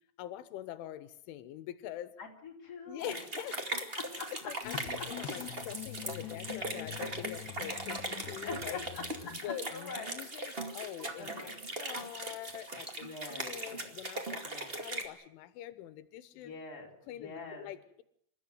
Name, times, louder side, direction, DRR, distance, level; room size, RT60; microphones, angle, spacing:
voice 1, 0.2-2.1 2.9-3.9 4.5-4.8 5.1-8.8 9.4-11.5 11.8-13.1 13.4-16.5 17.1-18.0, left 12 dB, 90° left, 13 dB, 3.6 m, -44 dB
voice 2, 2.2-3.2 3.9-4.0 4.7-5.0 6.2-6.3 8.4-9.0 9.4-10.2 11.2-11.6 13.0-13.9 14.5-14.8 16.3-17.7, left 4 dB, 20° left, 0 dB, 3.9 m, -44 dB
sound 1, 3.0-15.0, right 2 dB, 35° right, 0.8 m, -40 dB
sound 2, 4.6-9.5, left 14 dB, 75° left, 3.0 m, -45 dB
27.5 x 14.0 x 9.4 m, 0.69 s
omnidirectional pair, 5.4 m